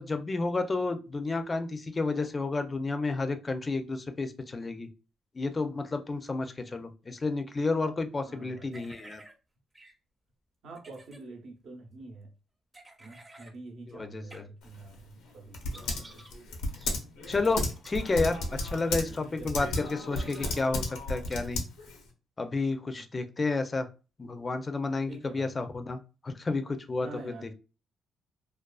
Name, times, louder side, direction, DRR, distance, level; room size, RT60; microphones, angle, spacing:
voice 1, 0.0-4.9 5.3-9.2 13.9-14.4 17.3-18.4 18.7-21.6 22.4-23.9 24.2-27.3, left 3 dB, 30° left, 0.4 m, -31 dB
voice 2, 8.2-8.9 10.6-12.3 13.0-16.5 18.1-18.4 19.2-19.7 22.9-23.0 25.1-25.5 26.9-27.5, right 3 dB, 70° right, 0.8 m, -46 dB
sound 1, 8.7-9.3 9.7-9.9 10.7-11.2 12.7-13.5 14.3-14.4 15.7-16.3 16.7-16.9 17.8-18.2 19.7-20.5 21.3-21.4, right 1 dB, 15° right, 0.6 m, -52 dB
Typing, 14.6-22.1, left 2 dB, 90° left, 0.6 m, -34 dB
2.3 x 2.3 x 2.3 m
cardioid pair, 90°, 0 cm